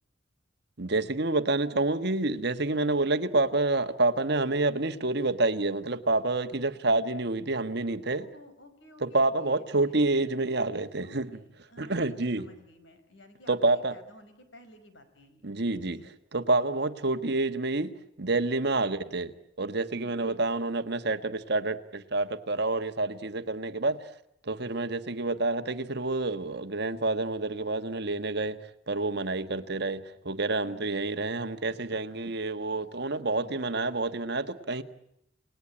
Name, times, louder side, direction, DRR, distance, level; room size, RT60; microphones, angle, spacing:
voice 1, 0.8-8.2 9.0-11.3 11.8-12.4 13.5-13.9 15.4-16.0 16.3-17.9 18.2-19.3 19.6-24.1 24.4-28.6 28.9-34.8, right 2 dB, 60° right, 1.5 m, -28 dB
voice 2, 8.1-10.3 11.0-15.5 15.9-16.1 16.6-16.9 19.9-20.2 30.6-30.9 33.4-33.6, left 1 dB, 70° left, 5.2 m, -54 dB
29.5 x 19.0 x 9.9 m
head